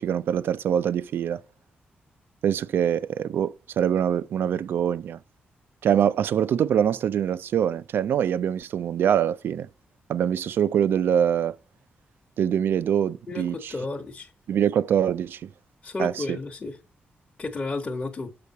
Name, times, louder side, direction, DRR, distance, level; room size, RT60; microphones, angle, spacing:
voice 1, 0.0-1.4 2.4-5.2 5.8-9.7 10.1-11.6 12.4-13.7 14.5-15.5 16.0-16.4, right 9 dB, 75° right, 0.4 m, -24 dB
voice 2, 13.3-14.3 15.8-16.8 17.4-18.3, left 3 dB, 30° left, 1.0 m, -32 dB
6.8 x 4.6 x 4.1 m
cardioid pair, 100°, 4 cm